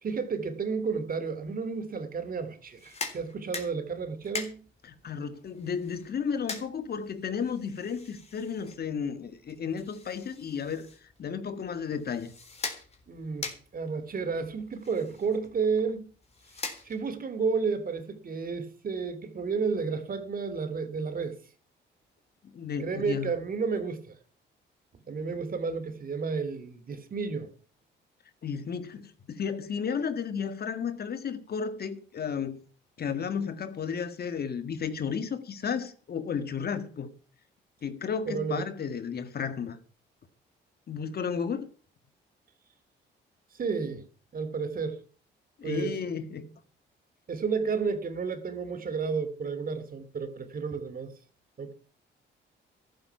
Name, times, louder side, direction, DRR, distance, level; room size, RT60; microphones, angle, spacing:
voice 1, 0.0-4.7 13.1-16.1 16.8-21.4 22.8-24.2 25.1-27.5 38.3-38.6 43.5-44.0 44.3-45.0 45.6-45.9 47.3-51.1 51.6-51.7, right 5 dB, 45° right, 2.6 m, -31 dB
sound 1, 2.6-17.3, left 4 dB, 30° left, 3.7 m, -43 dB
voice 2, 4.8-12.3 22.4-23.3 25.3-25.4 28.4-32.6 33.0-37.1 37.8-39.8 40.9-41.7 45.6-46.5, left 6 dB, 50° left, 1.9 m, -33 dB
14.0 x 12.0 x 5.9 m
cardioid pair, 90°, 20 cm